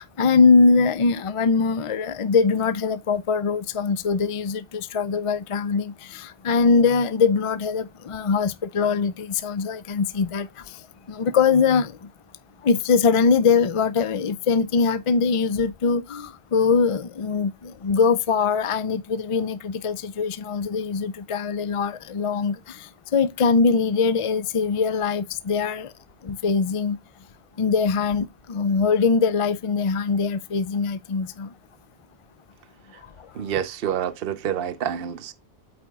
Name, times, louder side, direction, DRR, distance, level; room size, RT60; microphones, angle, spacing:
voice 1, 0.0-10.8 11.1-11.9 12.6-25.9 26.2-27.0 27.6-31.5, left 5 dB, 45° left, 0.5 m, -22 dB
voice 2, 33.3-35.3, right 9 dB, 65° right, 0.8 m, -27 dB
8.4 x 4.4 x 3.4 m
omnidirectional pair, 1.1 m